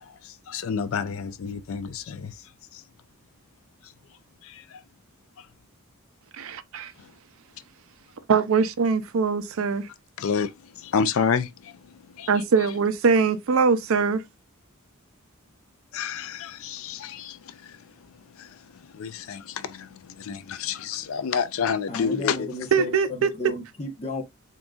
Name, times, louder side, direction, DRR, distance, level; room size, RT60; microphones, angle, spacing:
voice 1, 0.0-2.8 3.8-3.9 4.4-4.8 5.4-5.5 7.0-7.1 10.2-12.3 15.9-22.5, left 6 dB, 65° left, 0.4 m, -30 dB
voice 2, 6.3-6.9 8.3-9.9 12.3-14.2 22.7-23.3, right 5 dB, 65° right, 0.5 m, -22 dB
voice 3, 21.9-24.2, left 2 dB, 30° left, 0.9 m, -34 dB
3.9 x 3.6 x 2.3 m
head